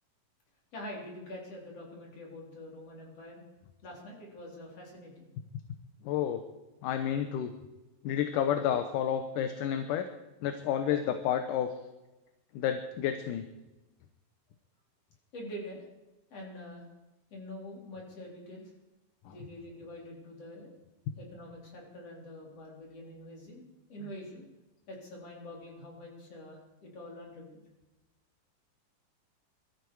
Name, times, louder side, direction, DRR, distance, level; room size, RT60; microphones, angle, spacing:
voice 1, 0.7-3.4 3.8-5.3 15.3-15.8 16.3-16.8 17.3-18.7 19.3-20.7 21.2-23.6 23.9-24.4 24.9-27.6, left 1 dB, 45° left, -2 dB, 4.8 m, -45 dB
voice 2, 6.0-6.4 6.8-7.5 8.0-10.1 10.4-11.7 12.5-13.5 19.3-19.4 21.1-21.2 24.0-24.1, left 9 dB, 75° left, 8 dB, 2.3 m, -30 dB
22.5 x 13.5 x 4.7 m, 1.0 s
omnidirectional pair, 4.1 m